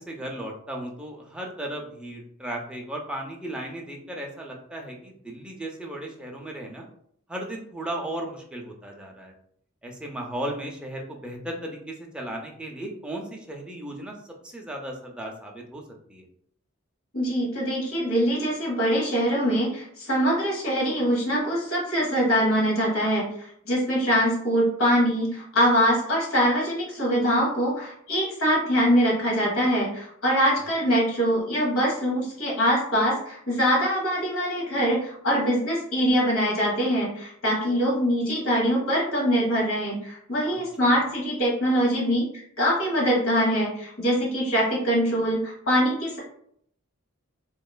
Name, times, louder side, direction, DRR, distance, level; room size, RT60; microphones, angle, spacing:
voice 1, 0.0-6.9 7.3-9.3 9.8-14.2 14.4-15.8 16.1-16.3 30.6-30.7 40.5-40.6 40.9-41.0, right 1 dB, 5° right, 0 dB, 0.4 m, -36 dB
voice 2, 17.1-42.2 42.6-46.2, equal, 80° left, -3 dB, 1.2 m, -23 dB
2.9 x 2.3 x 2.2 m, 0.66 s
head